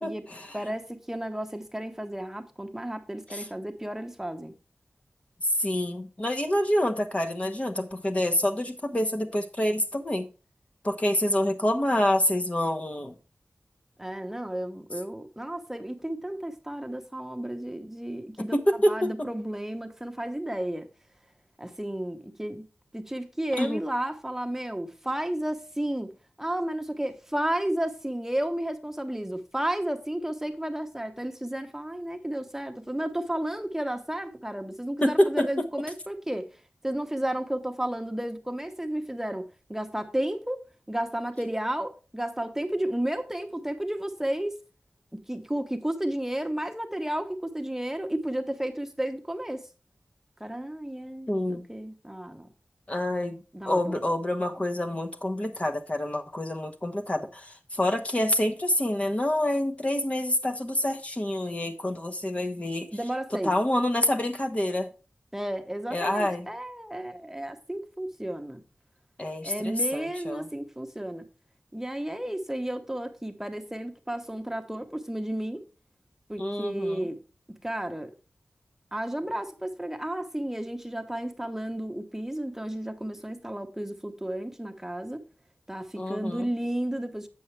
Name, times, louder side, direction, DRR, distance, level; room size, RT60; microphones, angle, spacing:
voice 1, 0.0-0.6 3.3-3.5 5.4-10.3 10.8-13.1 18.5-19.3 23.6-23.8 35.0-35.7 51.3-51.6 52.9-53.4 53.7-62.9 63.4-64.9 65.9-66.5 69.2-70.5 76.4-77.1 86.0-86.5, left 1 dB, 35° left, 1.0 m, -27 dB
voice 2, 0.5-4.5 14.0-18.5 18.9-20.9 21.6-22.6 22.9-26.1 26.4-36.5 36.8-44.6 45.1-49.7 50.4-52.5 53.5-54.0 62.9-63.5 65.3-68.6 69.4-71.2 71.7-75.6 76.3-77.2 77.6-78.1 78.9-85.2 85.7-87.3, right 1 dB, 10° right, 1.0 m, -32 dB
7.9 x 7.0 x 3.2 m
wide cardioid pair, 55°, 4 cm